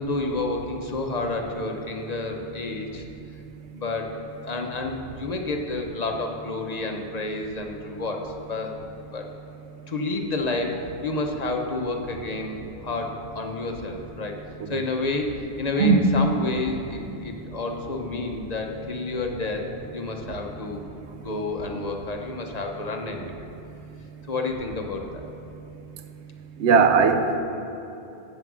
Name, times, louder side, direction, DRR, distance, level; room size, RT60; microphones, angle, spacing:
voice 1, 0.0-3.1 3.7-4.2 4.4-8.8 9.1-9.3 9.9-14.4 14.7-15.3 15.6-23.4 24.3-25.2, left 2 dB, 40° left, 3 dB, 0.8 m, -30 dB
voice 2, 26.6-27.4, right 5 dB, 80° right, 7 dB, 0.9 m, -18 dB
8.7 x 5.8 x 6.1 m, 2.9 s
omnidirectional pair, 1.1 m